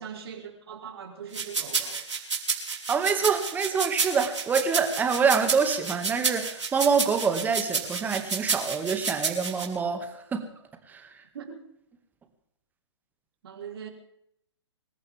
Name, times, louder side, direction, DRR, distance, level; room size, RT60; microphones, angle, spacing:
voice 1, 0.0-2.2 11.3-11.6 13.4-13.9, right 7 dB, 55° right, 2 dB, 4.4 m, -41 dB
sound 1, 1.3-9.7, right 5 dB, 80° right, 5.0 m, -29 dB
voice 2, 2.9-10.4 10.9-11.0, right 5 dB, 10° right, 6 dB, 2.2 m, -26 dB
26.0 x 14.5 x 3.7 m, 0.75 s
figure-of-eight pair, 130°, 15 cm